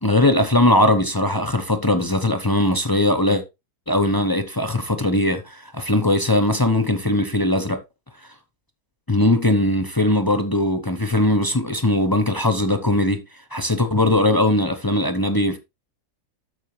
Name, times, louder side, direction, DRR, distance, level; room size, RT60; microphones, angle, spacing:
voice 1, 0.0-3.4 3.9-7.8 9.1-13.2 13.5-15.6, left 1 dB, 25° left, 0.5 m, -20 dB
13.0 x 4.9 x 3.2 m
omnidirectional pair, 1.7 m